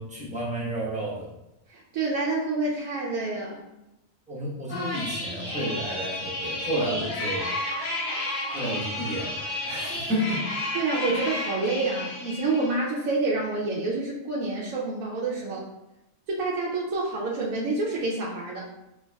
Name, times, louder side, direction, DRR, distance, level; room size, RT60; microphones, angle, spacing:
voice 1, 0.0-1.3 4.3-7.5 8.5-10.4, equal, 5° right, -8 dB, 0.8 m, -31 dB
voice 2, 1.7-3.6 10.7-15.6 16.3-18.7, right 3 dB, 80° right, -5 dB, 1.0 m, -28 dB
sound 1, 4.7-12.7, left 1 dB, 45° left, 0.8 m, -32 dB
4.5 x 2.9 x 2.2 m, 0.92 s
omnidirectional pair, 1.5 m